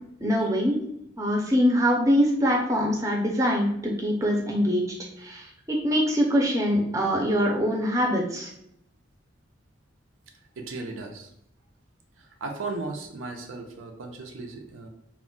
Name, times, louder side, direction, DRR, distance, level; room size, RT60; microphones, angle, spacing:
voice 1, 0.2-0.7 1.2-4.8 5.2-8.5, equal, 15° right, -1 dB, 0.4 m, -23 dB
voice 2, 10.6-11.3 12.2-14.9, right 3 dB, 90° right, 3 dB, 0.5 m, -36 dB
2.2 x 2.0 x 3.7 m, 0.74 s
head